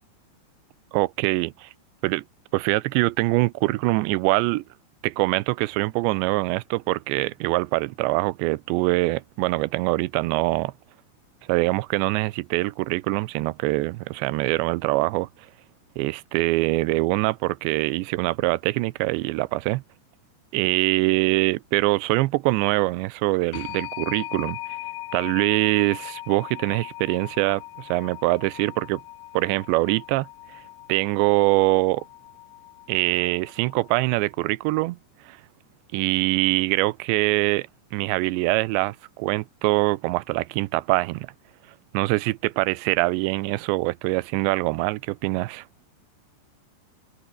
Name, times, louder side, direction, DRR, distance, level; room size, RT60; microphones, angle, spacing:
voice 1, 0.9-1.7 2.0-2.2 2.5-4.6 5.0-10.7 11.5-15.3 16.0-19.8 20.5-24.6 25.1-29.0 29.3-30.3 30.9-32.0 32.9-35.0 35.3-35.4 35.9-37.7 37.9-41.3 41.9-45.7, right 21 dB, 85° right, 3.0 m, -23 dB
sound 1, 23.5-34.2, left 17 dB, 80° left, 2.2 m, -39 dB
open air
omnidirectional pair, 5.1 m